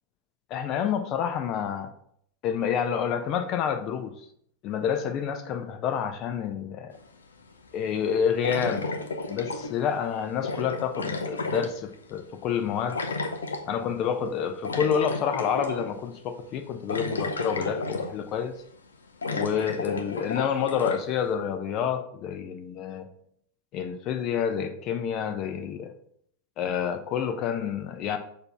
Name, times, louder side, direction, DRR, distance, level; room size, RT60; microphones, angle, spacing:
voice 1, 0.5-1.9 2.4-4.1 4.6-6.9 7.7-8.9 9.3-13.0 13.7-18.5 19.3-23.1 23.7-25.9 26.6-28.2, left 8 dB, 35° left, 0.7 m, -28 dB
sound 1, 7.1-7.2 8.4-9.9 10.4-12.2 12.9-13.7 14.6-15.9 16.3-16.4 16.9-18.4 18.7-18.8 19.2-21.0, left 3 dB, 70° left, 0.7 m, -32 dB
6.7 x 2.9 x 5.5 m
figure-of-eight pair, 90°, 0 cm